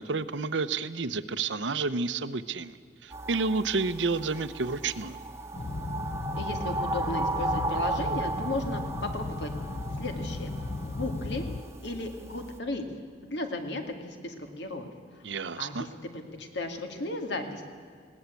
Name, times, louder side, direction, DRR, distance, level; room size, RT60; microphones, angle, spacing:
voice 1, 0.0-2.8 3.0-5.2 15.2-15.9, right 4 dB, 85° right, 13 dB, 0.8 m, -30 dB
sound 1, 3.1-12.6, right 2 dB, 15° right, 1.1 m, -35 dB
sound 2, 5.5-11.6, left 2 dB, 35° left, 0.5 m, -35 dB
voice 2, 6.4-9.5 10.0-10.5 10.8-11.5 11.8-12.8 13.2-15.2 15.5-17.6, left 2 dB, 70° left, 5 dB, 2.3 m, -35 dB
20.5 x 17.5 x 8.3 m, 2.1 s
head